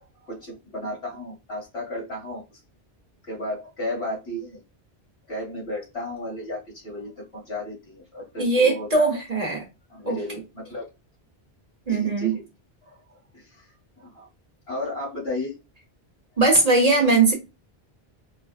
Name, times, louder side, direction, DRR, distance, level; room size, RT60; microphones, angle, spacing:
voice 1, 0.2-2.6 3.3-4.6 5.3-9.2 9.9-10.8 11.9-12.4 12.8-14.3 14.7-15.5, left 1 dB, 75° left, 2.2 m, -34 dB
voice 2, 8.4-9.6 10.1-10.2 11.9-12.3 16.4-17.3, right 3 dB, 40° right, 1.0 m, -20 dB
4.0 x 2.2 x 2.3 m
omnidirectional pair, 1.1 m